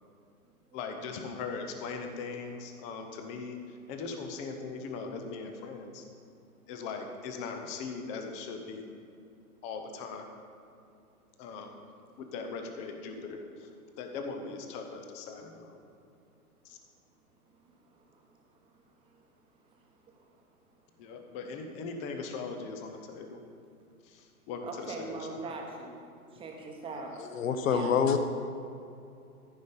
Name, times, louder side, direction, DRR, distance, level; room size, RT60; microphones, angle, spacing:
voice 1, 0.7-6.0 6.7-8.8 9.6-10.3 11.4-11.8 12.2-13.7 14.0-15.8 16.6-16.8 21.0-23.4 24.0-25.5, left 4 dB, 15° left, 5 dB, 0.5 m, -40 dB
voice 2, 17.6-19.2 20.0-20.4 24.6-25.9 26.3-27.1 27.6-28.0, right 3 dB, 10° right, 1 dB, 1.0 m, -42 dB
voice 3, 27.3-28.2, left 7 dB, 60° left, 8 dB, 1.0 m, -26 dB
14.0 x 5.3 x 5.2 m, 2.6 s
figure-of-eight pair, 115°, 45 cm